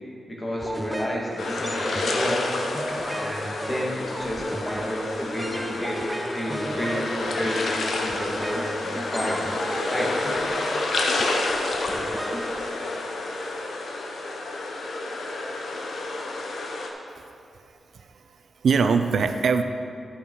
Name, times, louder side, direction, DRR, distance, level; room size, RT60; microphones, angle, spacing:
voice 1, 0.3-2.6 3.1-9.5 9.9-10.2, equal, 20° left, -4 dB, 2.0 m, -31 dB
sound 1, 0.6-13.3, right 1 dB, 5° right, 0.4 m, -35 dB
sound 2, 1.4-16.9, left 2 dB, 75° left, 0.9 m, -29 dB
voice 2, 17.6-19.6, right 5 dB, 70° right, 8 dB, 0.5 m, -24 dB
11.5 x 5.7 x 4.7 m, 2.4 s
wide cardioid pair, 105°, 0 cm